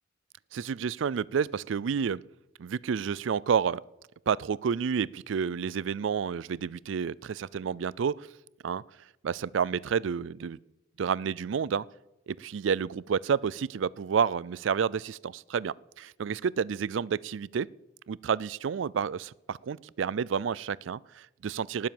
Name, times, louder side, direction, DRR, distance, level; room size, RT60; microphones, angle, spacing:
voice 1, 0.5-2.2 2.6-3.8 4.3-8.3 8.6-8.8 9.2-10.6 11.0-11.8 12.3-17.7 18.1-21.9, right 6 dB, 75° right, 23 dB, 0.4 m, -30 dB
18.5 x 7.6 x 7.1 m, 0.95 s
head